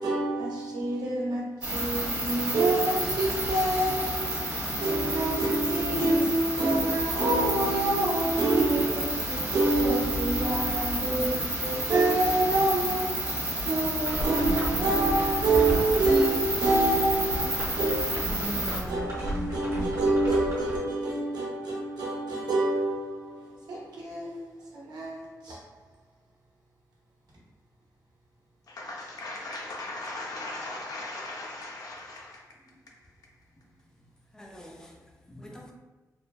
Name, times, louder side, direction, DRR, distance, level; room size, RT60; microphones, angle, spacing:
voice 1, 0.0-25.6, right 2 dB, 80° right, 0.8 m, -27 dB
sound 1, 1.6-18.8, right 1 dB, 35° right, 1.0 m, -30 dB
sound 2, 14.0-20.8, equal, 60° right, 1.0 m, -36 dB
voice 2, 28.7-32.4, left 2 dB, 65° left, 0.6 m, -38 dB
voice 3, 34.3-35.7, left 1 dB, 10° left, 0.4 m, -48 dB
3.1 x 2.1 x 2.3 m
wide cardioid pair, 105°, 7 cm